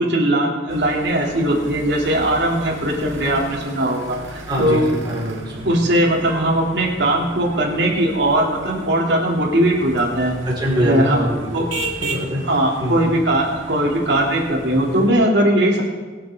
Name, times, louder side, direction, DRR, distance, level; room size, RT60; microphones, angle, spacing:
voice 1, 0.0-4.9 5.6-10.4 10.8-11.6 12.5-15.8, right 1 dB, 65° right, -2 dB, 2.7 m, -19 dB
sound 1, 0.7-15.1, right 2 dB, 85° right, 1.8 m, -35 dB
voice 2, 4.5-5.8 10.6-11.5 12.0-12.4 12.8-13.0, equal, 25° right, -6 dB, 4.2 m, -23 dB
23.5 x 8.3 x 3.6 m, 1.4 s
head